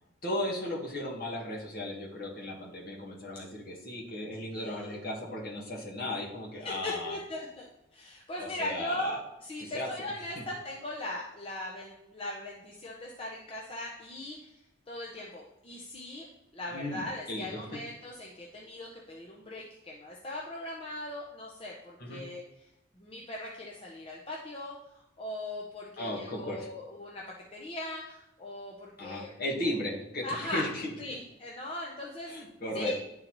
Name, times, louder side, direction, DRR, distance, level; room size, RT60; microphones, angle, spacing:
voice 1, 0.2-7.2 8.4-9.2 9.6-9.9 16.7-17.7 22.0-22.2 26.0-26.7 29.0-30.9 32.3-32.9, left 1 dB, 50° left, -3 dB, 1.3 m, -36 dB
voice 2, 4.5-5.0 6.6-14.5 14.9-16.3 16.5-22.4 23.0-27.2 27.5-29.3 30.2-30.7 31.0-32.3 32.7-32.9, left 1 dB, 25° left, -3 dB, 0.6 m, -39 dB
10.0 x 3.9 x 3.0 m, 0.89 s
head